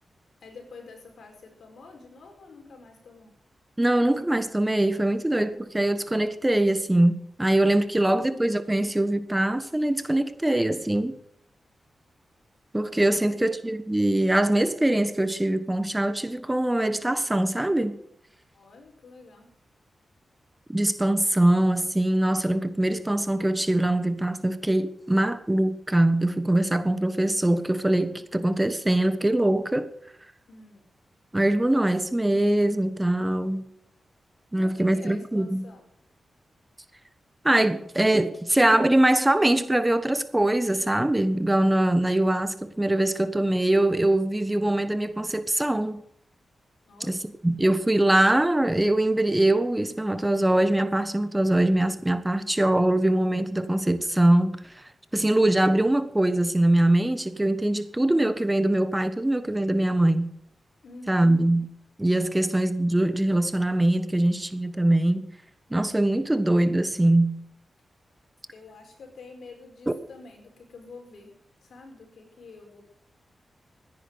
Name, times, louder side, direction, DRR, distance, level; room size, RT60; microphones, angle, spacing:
voice 1, 0.4-3.3 13.1-13.5 18.5-19.5 30.5-30.8 34.5-35.9 46.8-47.3 60.8-61.4 68.5-71.3 71.6-72.8, left 3 dB, 75° left, 4.9 m, -47 dB
voice 2, 3.8-11.2 12.7-17.9 20.7-29.9 31.3-33.6 34.5-35.6 37.4-46.0 47.0-54.8 55.1-60.3 61.1-61.7 62.0-65.3 65.7-67.4 69.9-70.0, right 1 dB, 15° right, 1.3 m, -23 dB
14.5 x 10.0 x 8.0 m
cardioid pair, 60°, 0 cm